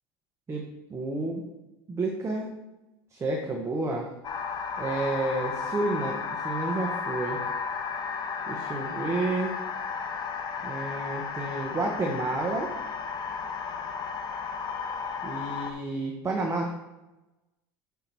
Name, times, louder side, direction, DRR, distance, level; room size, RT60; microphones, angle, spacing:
voice 1, 0.9-1.4 1.9-2.5 3.1-4.1 4.8-6.2 6.4-7.4 8.4-9.5 10.6-12.7 15.2-16.7, right 2 dB, 20° right, 0 dB, 1.1 m, -30 dB
sound 1, 4.2-15.7, left 5 dB, 35° left, 0.8 m, -33 dB
5.6 x 4.7 x 5.4 m, 1.0 s
hypercardioid pair, 90°, 13 cm